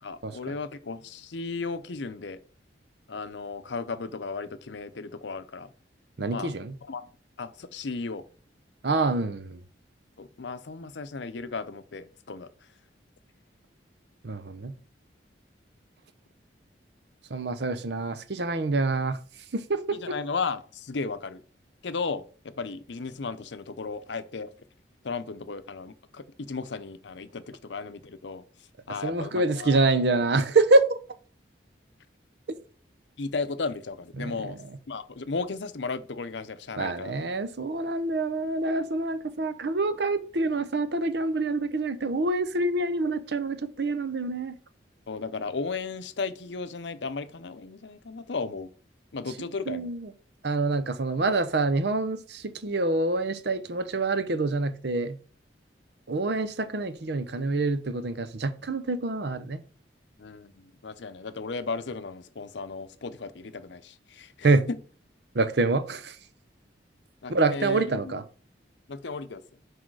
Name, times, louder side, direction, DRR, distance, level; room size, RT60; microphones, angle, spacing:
voice 1, 0.0-2.4 3.1-5.7 6.3-6.5 6.8-7.1 7.4-8.2 10.2-12.5 19.9-21.4 21.8-24.5 25.0-29.9 33.2-34.6 34.9-37.1 45.1-48.7 49.1-49.9 60.2-64.8 67.2-68.1 68.9-69.4, left 4 dB, 75° left, 0.7 m, -35 dB
voice 2, 6.2-6.7 8.8-9.6 14.2-14.7 17.3-19.2 19.5-20.1 29.0-31.0 34.2-34.4 36.8-44.6 49.7-50.1 50.4-55.2 56.1-59.6 64.4-64.7 65.3-66.2 67.3-68.2, right 3 dB, 65° right, 0.7 m, -26 dB
6.3 x 4.8 x 4.7 m
head